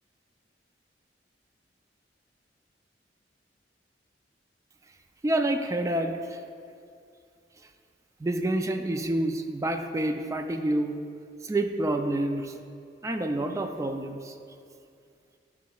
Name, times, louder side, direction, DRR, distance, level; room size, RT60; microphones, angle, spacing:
voice 1, 5.2-6.4 8.2-11.0 11.4-12.6 13.0-14.4, right 1 dB, 20° right, 5 dB, 0.3 m, -28 dB
9.2 x 6.0 x 2.3 m, 2.4 s
head